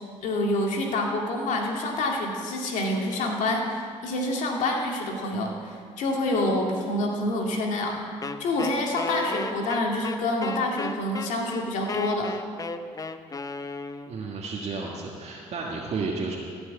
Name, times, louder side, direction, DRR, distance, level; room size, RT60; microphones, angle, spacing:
voice 1, 0.2-8.0 8.4-12.4, left 1 dB, 70° left, 0 dB, 2.3 m, -27 dB
Wind instrument woodwind instrument, 8.2-14.3, left 3 dB, 25° left, 0.7 m, -34 dB
voice 2, 14.1-16.4, right 4 dB, 55° right, -3 dB, 1.7 m, -32 dB
15.5 x 6.3 x 8.3 m, 2.2 s
supercardioid pair, 75°, 13 cm